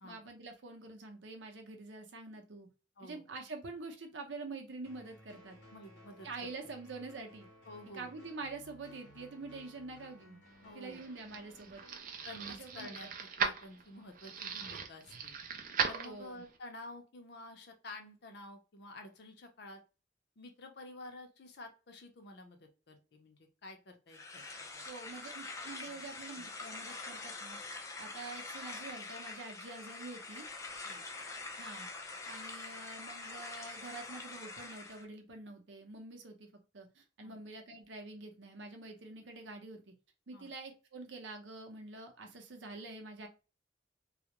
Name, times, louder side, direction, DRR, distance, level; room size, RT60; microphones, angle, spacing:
voice 1, 0.0-2.7 3.0-5.6 6.2-7.5 7.9-10.4 10.7-11.8 12.6-13.1 16.0-16.4 24.9-27.6 28.0-30.5 31.5-31.9 32.2-36.5 36.7-39.9 40.3-43.3, right 3 dB, 85° right, 4 dB, 0.7 m, -46 dB
sound 1, 4.8-12.0, equal, 90° left, 0.9 m, -58 dB
voice 2, 5.7-6.3 7.7-8.1 10.6-11.1 12.3-15.3 15.9-19.8 20.4-24.4 24.7-24.9 25.9-26.0 30.8-31.1 37.2-37.4 40.3-40.5, left 1 dB, 65° left, 5 dB, 0.6 m, -50 dB
sound 2, 10.6-16.6, right 6 dB, 50° right, 0.4 m, -38 dB
sound 3, 24.1-35.0, left 3 dB, 15° left, 0.4 m, -45 dB
2.3 x 2.1 x 2.9 m, 0.32 s
head